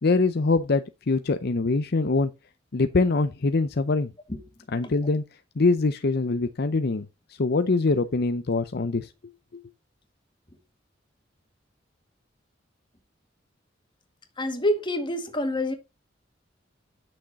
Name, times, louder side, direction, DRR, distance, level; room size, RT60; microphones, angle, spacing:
voice 1, 0.0-2.3 2.7-4.1 4.7-5.2 5.6-7.1 7.4-9.1, left 3 dB, 55° left, 0.6 m, -23 dB
voice 2, 14.4-15.7, left 1 dB, 25° left, 1.9 m, -27 dB
9.8 x 6.4 x 4.1 m
head